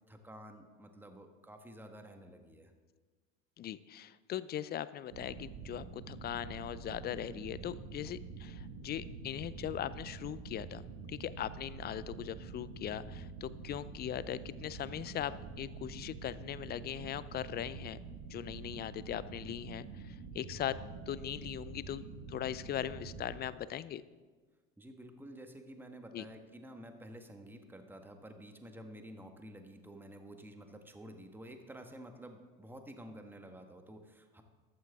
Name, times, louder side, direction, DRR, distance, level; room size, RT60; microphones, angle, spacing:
voice 1, 0.1-2.7 13.5-13.7 24.8-34.4, right 1 dB, 5° right, 5 dB, 1.5 m, -51 dB
voice 2, 3.6-10.8 11.1-18.0 18.3-20.8 21.1-24.0 26.1-26.2, left 11 dB, 25° left, 17 dB, 0.4 m, -40 dB
sound 1, 5.1-23.4, right 4 dB, 55° right, 1.9 m, -47 dB
14.5 x 12.5 x 3.6 m, 1.3 s
hypercardioid pair, 80°, 39 cm